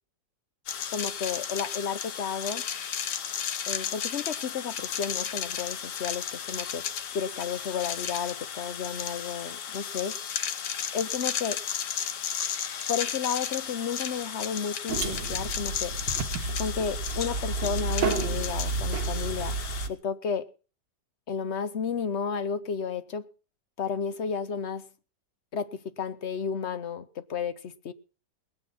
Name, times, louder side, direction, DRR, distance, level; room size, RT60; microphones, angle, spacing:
sound 1, 0.7-19.9, left 8 dB, 70° left, 1.6 m, -34 dB
voice 1, 0.9-2.6 3.7-6.8 7.1-10.1 10.9-11.6 12.9-16.0 16.6-19.6 19.9-20.5 21.3-23.3 23.8-24.9 25.5-27.9, left 6 dB, 50° left, 0.9 m, -32 dB
sound 2, 14.9-19.9, right 4 dB, 80° right, 1.9 m, -31 dB
19.5 x 9.0 x 5.6 m
omnidirectional pair, 1.9 m